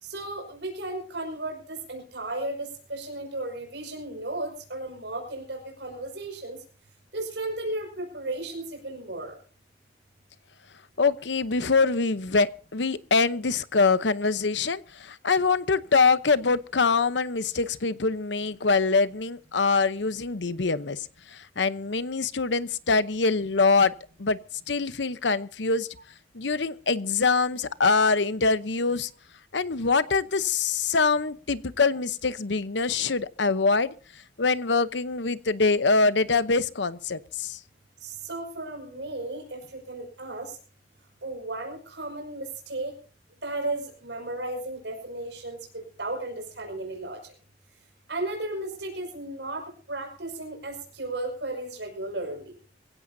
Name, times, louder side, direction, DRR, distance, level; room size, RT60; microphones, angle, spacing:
voice 1, 0.0-6.6 7.1-9.3 38.0-40.6 41.2-42.9 43.4-47.2 48.1-52.5, right 2 dB, 70° right, 5.8 m, -34 dB
voice 2, 11.0-23.9 24.2-24.4 24.7-25.9 26.3-29.1 29.5-33.9 34.4-37.6, left 4 dB, 75° left, 0.9 m, -24 dB
23.5 x 16.0 x 2.7 m
head